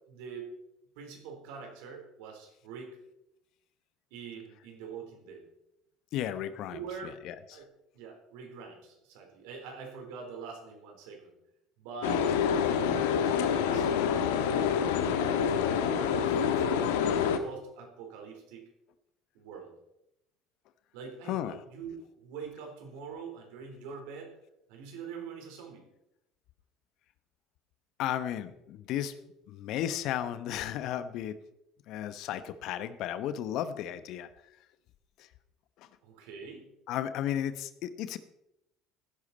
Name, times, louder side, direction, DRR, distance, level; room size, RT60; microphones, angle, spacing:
voice 1, 0.1-0.5 1.0-3.0 4.1-5.5 6.7-7.2 7.5-7.7 7.9-11.4 11.8-12.3 12.8-13.9 14.4-16.9 17.4-18.7 19.3-19.7 20.9-24.3 24.7-25.8 36.0-36.7, right 5 dB, 75° right, 2 dB, 4.0 m, -44 dB
voice 2, 6.1-7.6 21.3-21.6 28.0-29.1 29.5-31.4 31.9-34.3 35.2-35.3 35.8-35.9 36.9-38.2, left 11 dB, 65° left, 13 dB, 0.9 m, -34 dB
sound 1, 12.0-17.4, left 7 dB, 80° left, 1.2 m, -27 dB
16.0 x 11.0 x 4.3 m, 0.86 s
hypercardioid pair, 65°, 0 cm